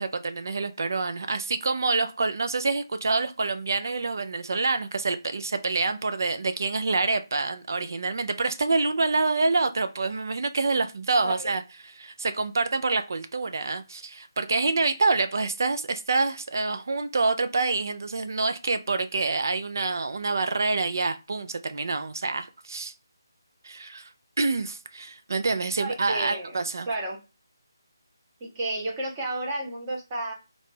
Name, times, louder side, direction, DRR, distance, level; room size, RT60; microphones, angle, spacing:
voice 1, 0.0-11.6 12.0-22.9 23.6-24.1 24.4-26.9, right 3 dB, 50° right, 0.3 m, -27 dB
voice 2, 11.2-11.5 25.8-26.6 26.9-27.2 28.4-30.3, right 2 dB, 15° right, 0.6 m, -31 dB
3.8 x 2.2 x 3.2 m
figure-of-eight pair, 175°, 2 cm